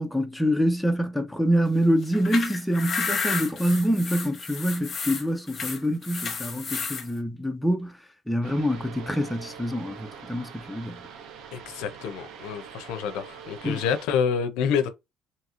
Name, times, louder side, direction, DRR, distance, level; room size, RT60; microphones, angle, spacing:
voice 1, 0.0-11.0 13.6-13.8, equal, 5° left, 0.5 m, -26 dB
sound 1, 2.0-7.1, left 5 dB, 40° left, 1.0 m, -31 dB
sound 2, 8.4-14.1, right 7 dB, 70° right, 0.6 m, -44 dB
voice 2, 11.5-14.9, left 7 dB, 85° left, 0.5 m, -27 dB
2.8 x 2.7 x 2.4 m
cardioid pair, 105°, 0 cm